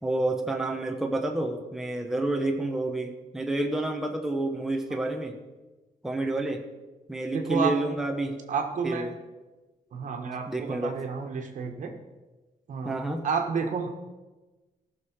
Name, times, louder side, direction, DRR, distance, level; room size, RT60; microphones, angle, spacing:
voice 1, 0.0-5.4 6.0-6.6 7.1-8.4 8.8-9.1 10.5-11.0 12.8-13.2, right 2 dB, ahead, 2 dB, 0.9 m, -29 dB
voice 2, 7.3-7.7 8.5-9.1 9.9-11.9 12.7-12.9 13.2-13.9, right 6 dB, 60° right, 4 dB, 1.5 m, -30 dB
18.5 x 6.5 x 4.6 m, 1.2 s
wide cardioid pair, 170°, 15 cm